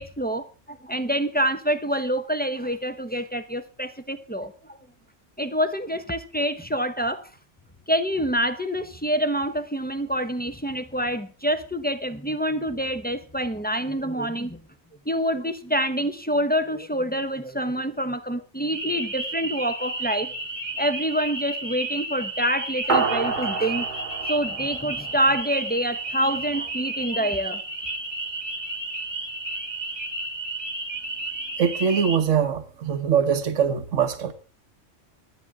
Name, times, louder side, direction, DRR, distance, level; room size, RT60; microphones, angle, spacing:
voice 1, 0.0-4.5 5.4-7.2 7.9-14.6 15.1-20.3 20.8-23.9 24.3-27.6, equal, 10° left, 0.7 m, -26 dB
sound 1, 18.7-32.2, right 2 dB, 20° right, 1.2 m, -32 dB
sound 2, 22.9-25.6, right 4 dB, 40° right, 1.2 m, -28 dB
voice 2, 31.6-34.3, right 7 dB, 80° right, 1.5 m, -22 dB
25.5 x 8.9 x 3.6 m
omnidirectional pair, 1.3 m